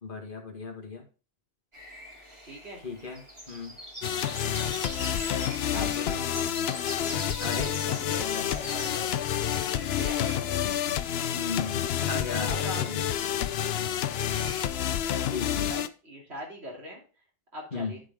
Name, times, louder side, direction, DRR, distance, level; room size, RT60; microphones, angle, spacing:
voice 1, 0.0-1.0 2.8-3.2 3.5-3.7 5.7-6.2 7.4-7.7 11.3-13.0 15.3-15.5 17.7-18.0, left 4 dB, 55° left, 1 dB, 1.9 m, -36 dB
sound 1, 1.7-14.7, right 1 dB, 25° right, 2.9 m, -44 dB
voice 2, 2.5-2.8 5.7-5.9 7.5-9.1 9.6-10.8 12.4-13.1 15.6-17.0 17.5-18.0, equal, 85° right, -1 dB, 3.2 m, -41 dB
sound 2, 4.0-15.9, left 10 dB, 75° left, 0.8 m, -29 dB
11.0 x 5.2 x 3.5 m, 0.35 s
omnidirectional pair, 1.1 m